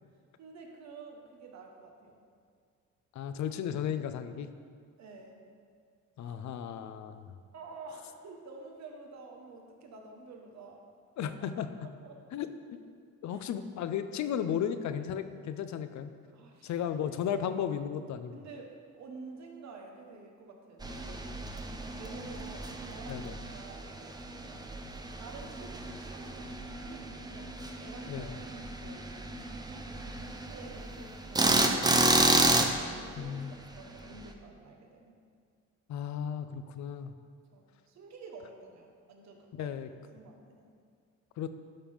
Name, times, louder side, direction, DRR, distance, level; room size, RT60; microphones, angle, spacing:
voice 1, 0.4-2.2 5.0-5.4 6.2-6.5 7.5-10.8 11.2-11.3 12.0-12.2 13.3-13.4 16.3-16.8 18.3-23.2 23.5-24.6 25.2-29.1 29.5-29.8 30.2-32.4 32.9-35.1 37.5-39.7 40.1-40.7, right 3 dB, 65° right, 1 dB, 1.3 m, -50 dB
voice 2, 3.1-4.5 6.2-7.3 11.2-11.7 12.3-12.5 13.2-16.1 16.6-18.4 23.1-23.4 28.1-28.3 33.2-33.6 35.9-37.1 39.5-39.9 41.4-41.5, left 8 dB, 70° left, 10 dB, 0.6 m, -34 dB
sound 1, 20.8-34.2, right 2 dB, 15° right, 0.6 m, -31 dB
11.5 x 5.7 x 3.6 m, 2.1 s
cardioid pair, 90°, 30 cm